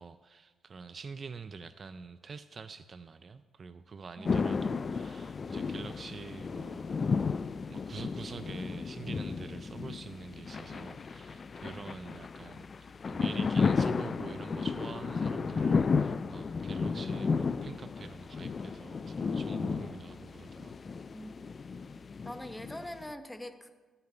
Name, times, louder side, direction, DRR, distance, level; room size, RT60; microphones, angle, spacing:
voice 1, 0.0-7.0 7.7-20.8, right 5 dB, 40° right, 13 dB, 0.4 m, -46 dB
voice 2, 4.2-4.7 21.1-21.3 22.2-23.7, left 1 dB, 10° left, 8 dB, 0.9 m, -43 dB
sound 1, 4.3-23.1, left 5 dB, 40° left, 0.3 m, -33 dB
14.0 x 9.7 x 4.4 m, 1.4 s
cardioid pair, 90°, 0 cm